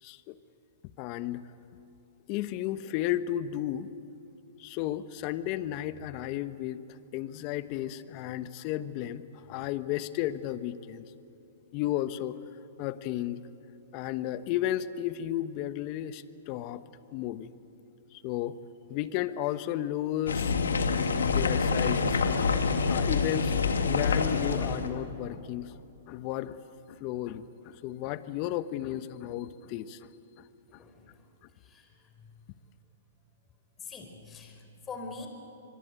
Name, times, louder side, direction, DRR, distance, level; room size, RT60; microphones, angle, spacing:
voice 1, 0.0-0.3 1.0-1.4 2.3-3.9 4.6-6.8 7.1-11.1 11.7-12.4 12.8-13.4 13.9-16.8 17.1-17.5 18.1-18.6 18.9-20.6 21.2-22.2 22.9-25.8 26.1-26.6 26.9-30.1, left 13 dB, 40° left, 13 dB, 1.1 m, -33 dB
sound 1, 20.3-24.9, left 5 dB, 90° left, 2.0 m, -26 dB
voice 2, 30.7-31.3 31.6-32.3 33.8-35.3, left 4 dB, 20° left, 4 dB, 4.3 m, -45 dB
24.5 x 23.5 x 9.1 m, 2.9 s
hypercardioid pair, 125°, 0 cm